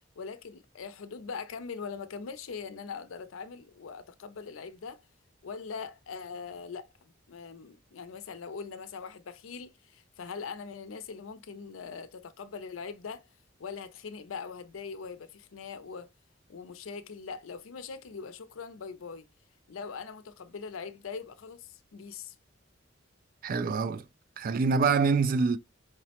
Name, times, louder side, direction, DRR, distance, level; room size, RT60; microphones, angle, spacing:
voice 1, 0.2-5.0 5.4-13.3 13.6-16.1 16.5-19.3 19.7-22.3, left 5 dB, 85° left, 0.5 m, -41 dB
voice 2, 23.4-24.0 24.4-25.6, right 4 dB, 45° right, 0.3 m, -25 dB
4.7 x 2.0 x 2.8 m
head